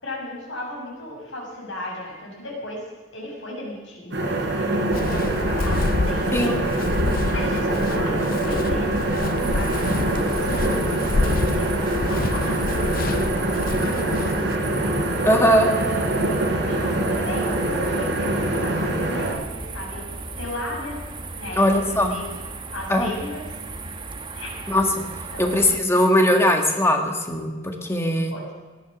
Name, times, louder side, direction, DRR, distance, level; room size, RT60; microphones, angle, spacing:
voice 1, 0.0-2.9 3.1-9.8 10.1-14.8 15.4-20.1 20.4-21.0 21.3-22.2 22.7-23.5 24.3-24.6 25.3-25.5 28.3-28.5, left 1 dB, 80° left, -2 dB, 6.4 m, -35 dB
sound 1, 4.1-19.3, right 1 dB, 65° right, 4.3 m, -24 dB
Walk footsteps, 4.9-14.6, left 3 dB, 50° left, 0.6 m, -28 dB
sound 2, 9.4-25.8, right 2 dB, 25° right, 1.1 m, -35 dB
voice 2, 15.2-15.7 21.6-22.1 22.9-23.1 24.7-24.8 25.4-28.3, left 1 dB, 15° left, 3 dB, 1.8 m, -20 dB
18.0 x 11.5 x 6.2 m, 1.3 s
head